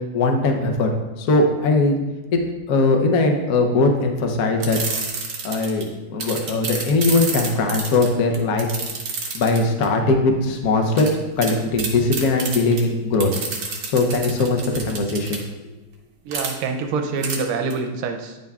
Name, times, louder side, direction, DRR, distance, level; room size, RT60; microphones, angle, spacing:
voice 1, 0.1-0.9 1.2-2.0 2.3-2.4 2.7-4.8 5.4-8.7 9.3-11.1 11.4-13.3 13.9-15.4, left 3 dB, 65° left, 3 dB, 0.9 m, -20 dB
sound 1, 4.6-5.8 6.2-9.8 11.0-11.1 11.4-11.5 11.8-12.8 13.2-15.4 16.3-16.5 17.2-17.4 17.7-17.8, right 4 dB, 55° right, 1.3 m, -28 dB
voice 2, 16.2-18.4, right 4 dB, 90° right, 4 dB, 1.5 m, -26 dB
9.6 x 5.2 x 2.3 m, 1.1 s
omnidirectional pair, 2.3 m